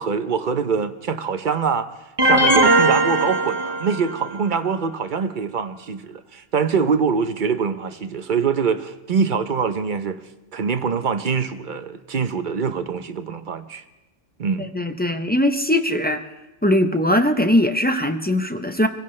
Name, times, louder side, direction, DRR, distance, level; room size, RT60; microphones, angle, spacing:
voice 1, 0.0-1.9 2.2-10.2 10.5-13.8 14.4-14.7, right 6 dB, 45° right, 0.8 m, -24 dB
sound 1, 2.2-4.3, right 2 dB, 20° right, 1.0 m, -18 dB
voice 2, 14.6-16.2 16.6-18.9, left 1 dB, 10° left, 0.4 m, -20 dB
25.5 x 16.0 x 3.2 m
omnidirectional pair, 1.3 m